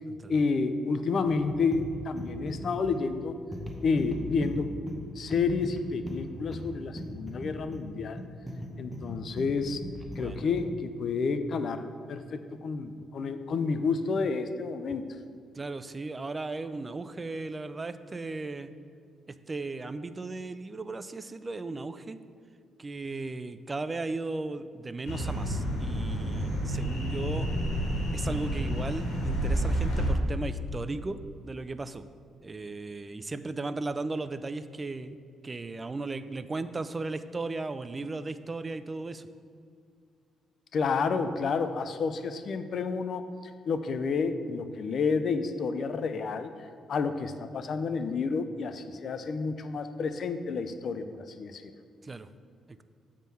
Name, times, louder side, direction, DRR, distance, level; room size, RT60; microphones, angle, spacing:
voice 1, 0.3-3.4 3.8-4.7 5.2-8.2 8.8-9.8 10.2-15.0 40.7-43.2 43.7-46.5 46.9-51.1 51.4-51.6, left 4 dB, 55° left, 10 dB, 0.4 m, -30 dB
sound 1, 1.3-10.8, equal, 5° right, 0.8 m, -40 dB
voice 2, 15.6-18.7 19.3-22.2 22.8-27.5 28.1-32.1 32.4-35.2 35.4-39.3 52.0-52.3 52.7-52.8, right 3 dB, 25° right, 12 dB, 0.3 m, -36 dB
sound 2, 25.1-30.1, equal, 75° left, 1.7 m, -30 dB
7.4 x 3.7 x 5.5 m, 2.2 s
cardioid pair, 90°, 0 cm